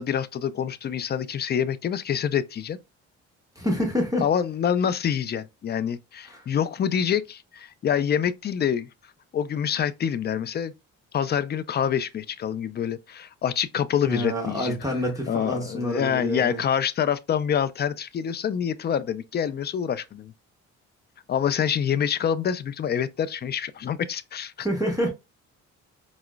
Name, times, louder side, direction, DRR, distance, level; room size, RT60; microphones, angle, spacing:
voice 1, 0.0-2.8 4.2-8.9 9.3-10.7 11.1-14.8 15.3-20.3 21.3-24.7, left 8 dB, 35° left, 0.4 m, -26 dB
voice 2, 3.6-4.2 6.2-6.5 14.0-16.6 24.6-25.1, equal, 10° right, 0.9 m, -27 dB
4.7 x 2.0 x 2.2 m
cardioid pair, 90°, 30 cm